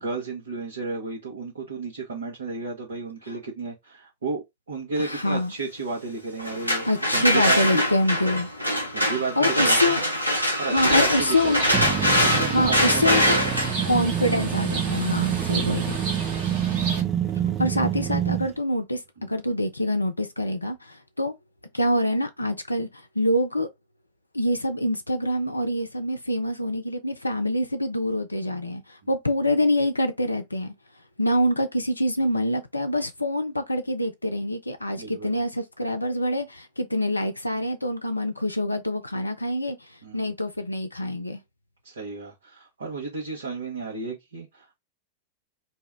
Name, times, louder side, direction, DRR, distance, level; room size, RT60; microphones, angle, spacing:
voice 1, 0.0-4.4 4.7-7.8 8.9-10.0 10.6-11.8 12.2-13.6 17.4-17.5 34.9-35.3 40.0-40.3 41.8-44.8, right 3 dB, 70° right, 1.0 m, -33 dB
voice 2, 5.0-5.5 6.9-8.5 9.4-10.0 10.7-11.6 12.5-13.4 13.9-16.0 17.6-21.3 21.7-22.9 23.2-23.7 24.3-28.8 29.1-30.7 31.2-39.8 40.1-41.4, left 1 dB, 85° left, 0.5 m, -25 dB
sound 1, 6.4-16.2, equal, 90° right, 0.7 m, -24 dB
Bird, 10.7-17.0, right 3 dB, 45° right, 1.1 m, -34 dB
sound 2, 11.7-18.5, right 9 dB, 25° right, 0.4 m, -27 dB
2.7 x 2.1 x 3.5 m
figure-of-eight pair, 90°, 0 cm